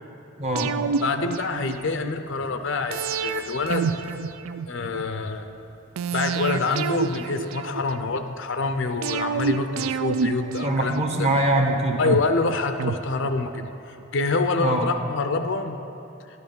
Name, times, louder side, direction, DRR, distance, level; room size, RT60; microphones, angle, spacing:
voice 1, 0.4-0.9 10.6-12.0 14.6-14.9, right 1 dB, 30° right, 2 dB, 1.0 m, -23 dB
sound 1, 0.5-2.1 2.9-5.0 6.0-8.2 9.0-11.4 12.0-13.7 14.0-14.1, right 6 dB, 70° right, 0.4 m, -29 dB
voice 2, 1.0-3.9 4.7-5.5 6.1-10.9 11.2-11.3 12.0-15.8, left 3 dB, 60° left, 8 dB, 0.6 m, -26 dB
11.5 x 9.4 x 5.3 m, 2.8 s
head